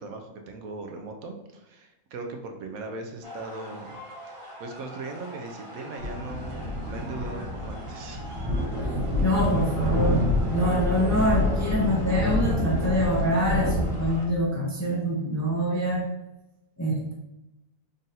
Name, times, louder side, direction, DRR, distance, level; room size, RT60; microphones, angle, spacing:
voice 1, 0.0-8.3, right 3 dB, 75° right, 4 dB, 1.1 m, -39 dB
sound 1, 3.2-14.2, equal, 40° right, 0.5 m, -44 dB
sound 2, 6.0-14.3, left 1 dB, 60° right, 1.6 m, -27 dB
voice 2, 9.2-10.2 10.5-16.0 16.8-17.1, equal, 25° left, -4 dB, 0.4 m, -25 dB
3.8 x 2.5 x 4.1 m, 0.95 s
omnidirectional pair, 1.5 m